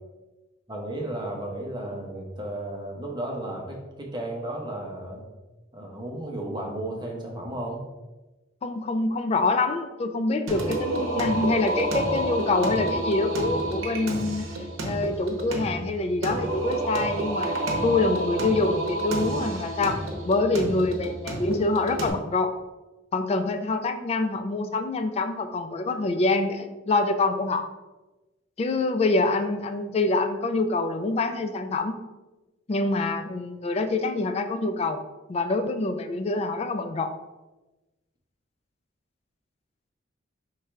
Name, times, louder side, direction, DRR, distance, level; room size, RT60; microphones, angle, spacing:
voice 1, 0.7-5.2 5.7-7.8, right 1 dB, 20° right, 0 dB, 0.8 m, -34 dB
voice 2, 8.6-14.5 14.8-17.6 17.8-20.0 20.2-22.5 23.1-27.7 28.6-32.0 32.7-35.0 35.3-37.1, left 3 dB, 30° left, 7 dB, 0.3 m, -25 dB
Singing, 10.5-22.1, right 2 dB, 80° right, 0.8 m, -29 dB
3.6 x 3.2 x 4.4 m, 1.1 s
head